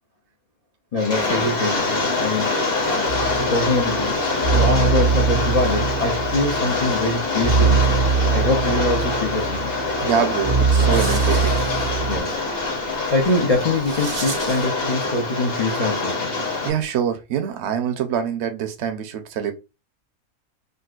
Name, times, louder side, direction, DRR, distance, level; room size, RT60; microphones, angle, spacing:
voice 1, 0.9-4.2 4.5-9.7 12.1-12.4 13.1-16.4, left 2 dB, 55° left, 0.4 m, -24 dB
Rain, 1.0-16.7, left 3 dB, 35° left, 1.0 m, -24 dB
sound 1, 3.1-12.2, right 5 dB, 70° left, 1.4 m, -23 dB
voice 2, 10.0-11.5 16.6-19.5, right 8 dB, 60° right, 0.8 m, -25 dB
sound 2, 10.8-14.8, right 5 dB, 80° right, 0.4 m, -37 dB
3.8 x 2.2 x 2.4 m
omnidirectional pair, 1.5 m